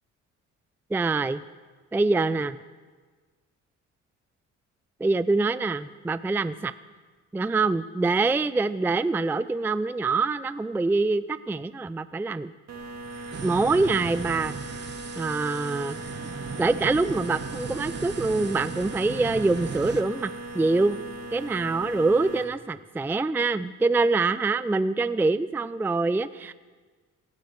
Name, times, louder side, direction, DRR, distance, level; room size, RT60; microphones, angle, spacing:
voice 1, 0.9-1.4 1.9-2.6 5.0-6.7 7.3-12.5 13.4-14.5 15.2-16.0 16.6-21.0 21.3-26.5, right 3 dB, 5° right, 14 dB, 0.4 m, -25 dB
sound 1, 12.7-22.4, right 2 dB, 60° right, 2.3 m, -38 dB
sound 2, 13.3-20.0, right 5 dB, 35° right, 1.1 m, -38 dB
17.0 x 12.0 x 6.6 m, 1.4 s
cardioid pair, 90°, 30 cm